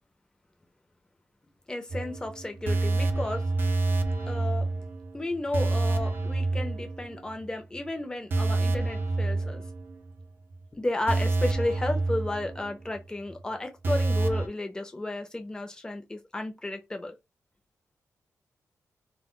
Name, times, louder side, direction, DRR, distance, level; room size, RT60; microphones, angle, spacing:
voice 1, 1.7-3.5 4.3-4.7 5.1-9.6 10.7-17.2, left 2 dB, 15° left, 0.5 m, -33 dB
sound 1, 1.9-7.5 7.8-7.9 8.3-10.2 10.5-10.6 11.1-13.0 13.3-13.4 13.8-14.5, right 2 dB, 40° right, 0.4 m, -28 dB
2.1 x 2.0 x 3.6 m
wide cardioid pair, 170°, 5 cm